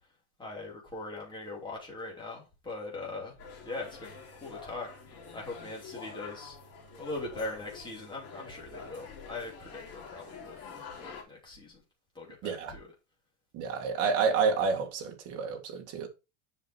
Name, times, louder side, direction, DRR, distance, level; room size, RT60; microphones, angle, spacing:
voice 1, 0.4-3.3 3.6-4.9 5.3-6.6 7.0-11.8 12.1-12.9, left 2 dB, 10° left, 3.0 m, -41 dB
sound 1, 3.4-11.2, left 5 dB, 40° left, 3.9 m, -47 dB
voice 2, 12.4-12.7 13.5-16.1, right 5 dB, 40° right, 2.3 m, -29 dB
7.5 x 5.9 x 4.7 m
cardioid pair, 165°, 37 cm